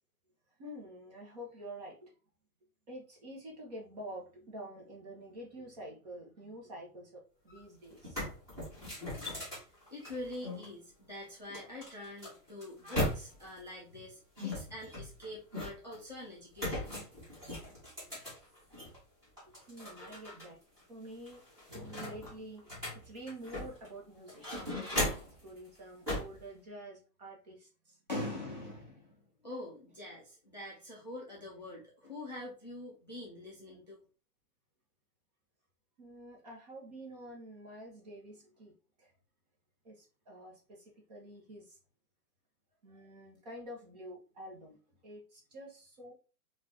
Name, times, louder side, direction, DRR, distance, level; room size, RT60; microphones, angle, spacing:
voice 1, 0.6-2.1 2.9-8.3 19.7-20.6 20.9-21.4 21.7-22.7 23.0-28.0 36.0-38.7 39.0-39.1 39.8-41.8 42.8-46.1, right 1 dB, 25° right, -2 dB, 0.8 m, -48 dB
sound 1, 7.5-7.6 7.9-10.7 11.5-13.6 14.4-16.0 16.5-19.0 19.4-20.5 20.8-20.9 21.3-23.9 24.3-25.4 26.1-26.4, left 1 dB, 10° right, 1.4 m, -38 dB
voice 2, 9.9-16.9 28.1-34.0, left 1 dB, 30° left, -5 dB, 0.4 m, -44 dB
3.9 x 2.5 x 2.7 m, 0.34 s
hypercardioid pair, 170°, 46 cm